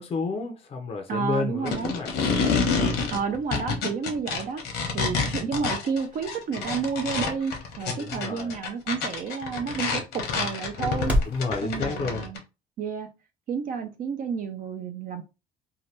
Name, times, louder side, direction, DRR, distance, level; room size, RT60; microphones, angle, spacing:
voice 1, 0.0-2.1 8.0-8.6 11.3-12.3, left 4 dB, 40° left, 0.5 m, -30 dB
voice 2, 1.1-1.9 3.1-4.6 4.9-11.2 11.6-12.4 12.8-13.1 13.5-15.2, right 6 dB, 55° right, 0.5 m, -30 dB
sound 1, 1.7-12.4, left 4 dB, 80° left, 1.0 m, -28 dB
sound 2, 5.2-11.4, equal, 10° right, 0.7 m, -35 dB
2.8 x 2.1 x 3.1 m
cardioid pair, 110°, 17 cm